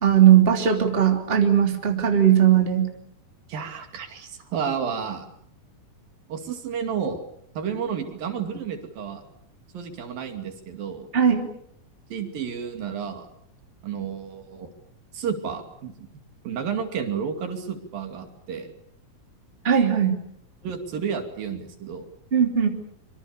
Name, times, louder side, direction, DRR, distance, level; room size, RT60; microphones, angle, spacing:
voice 1, 0.0-2.9 11.1-11.5 19.6-20.2 22.3-22.7, right 9 dB, 15° right, 3 dB, 2.9 m, -18 dB
voice 2, 3.5-5.3 6.3-7.2 7.6-9.2 9.7-11.1 12.1-13.3 13.8-14.7 15.1-16.1 16.4-18.7 20.6-22.1, right 7 dB, 70° right, 5 dB, 4.2 m, -31 dB
25.5 x 25.5 x 6.9 m, 0.69 s
omnidirectional pair, 4.3 m